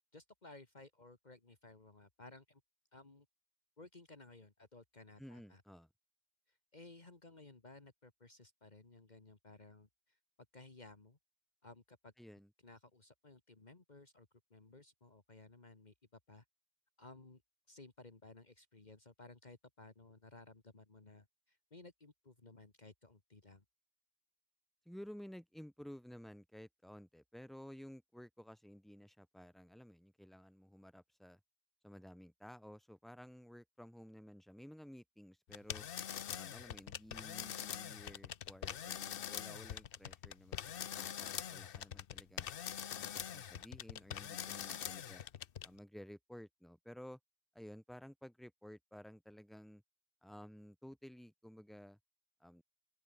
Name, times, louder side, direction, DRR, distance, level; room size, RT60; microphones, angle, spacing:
voice 1, 0.1-2.6 2.9-3.3 3.8-5.6 6.5-10.2 10.5-11.2 11.6-12.1 12.6-16.4 17.0-17.4 17.7-23.6, left 2 dB, 45° left, 2.1 m, -58 dB
voice 2, 5.2-5.9 12.2-12.5 24.8-31.4 31.8-35.9 36.3-42.5 42.9-45.2 45.6-47.2 47.5-49.8 50.2-52.0 52.4-52.6, equal, ahead, 3.3 m, -54 dB
sound 1, 35.5-45.8, left 9 dB, 65° left, 0.9 m, -44 dB
open air
omnidirectional pair, 1.0 m